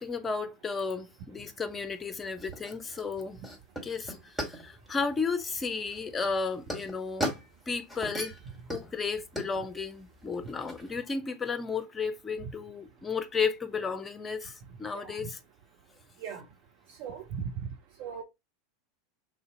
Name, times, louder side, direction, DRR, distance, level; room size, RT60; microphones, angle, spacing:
voice 1, 0.0-3.4 3.8-7.3 7.7-8.4 8.7-15.4, left 5 dB, 20° left, 0.6 m, -33 dB
sound 1, 1.7-10.9, equal, 5° right, 1.3 m, -39 dB
voice 2, 17.0-17.4 18.0-18.2, right 7 dB, 50° right, 0.6 m, -38 dB
3.3 x 2.7 x 3.8 m
figure-of-eight pair, 80°, 0 cm